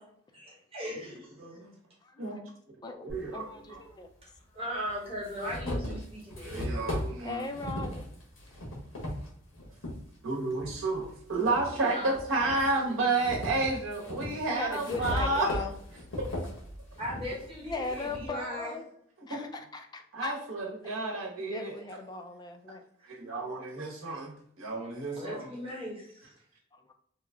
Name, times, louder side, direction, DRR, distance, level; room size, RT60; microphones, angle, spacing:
voice 1, 0.3-1.3 4.5-6.9 11.7-13.6 17.0-18.7 23.4-23.5 25.1-26.3, equal, 30° right, -5 dB, 1.2 m, -39 dB
voice 2, 1.4-1.7 2.2-2.4 3.0-3.8 6.4-7.5 10.2-15.5 16.2-16.3 19.3-19.5 20.1-21.8 23.1-25.5, right 3 dB, 70° right, -2 dB, 1.0 m, -31 dB
voice 3, 2.0-2.4 2.8-4.1 7.2-8.1 14.5-15.7 17.6-18.9 19.3-20.3 20.8-21.0 21.4-22.8, left 3 dB, 20° left, 5 dB, 0.3 m, -38 dB
sound 1, 3.1-3.2 4.3-4.4 4.8-10.0 10.5-11.7 12.1-18.3, left 1 dB, 75° left, 1.1 m, -37 dB
3.0 x 2.4 x 3.4 m, 0.67 s
head